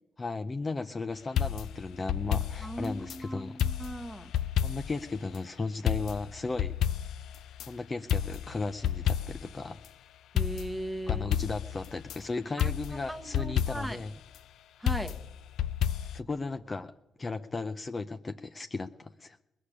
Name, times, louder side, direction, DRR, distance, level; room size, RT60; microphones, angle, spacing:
voice 1, 0.2-3.6 4.6-6.7 7.7-9.8 11.1-14.1 16.1-16.9 17.2-19.4, left 3 dB, 30° left, 8 dB, 0.6 m, -35 dB
sound 1, 1.4-3.2 3.6-5.1 5.3-5.4 5.9-7.7 8.1-9.6 9.8-9.9 10.4-12.2 12.6-14.1 14.9-16.2, left 10 dB, 80° left, 0.5 m, -31 dB
voice 2, 2.6-4.3 10.3-11.2 12.6-12.7 13.1-14.0 14.8-15.2, right 1 dB, ahead, 7 dB, 1.4 m, -38 dB
19.5 x 6.7 x 9.9 m, 1.0 s
cardioid pair, 90°, 0 cm